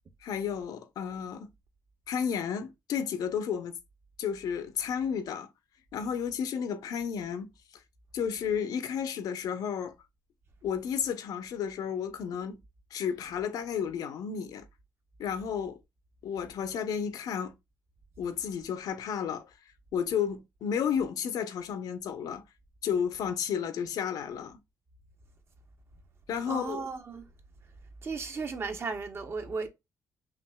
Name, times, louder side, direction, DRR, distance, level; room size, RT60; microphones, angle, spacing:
voice 1, 0.2-1.5 2.1-3.8 4.2-5.5 5.9-7.5 8.1-9.9 10.6-12.6 12.9-14.7 15.2-15.8 16.2-17.5 18.2-19.5 19.9-22.4 22.8-24.6 26.3-26.8, left 7 dB, 80° left, 0.8 m, -32 dB
voice 2, 26.5-27.3 28.0-29.7, right 4 dB, 40° right, 0.9 m, -35 dB
5.9 x 2.5 x 2.3 m
cardioid pair, 125°, 6 cm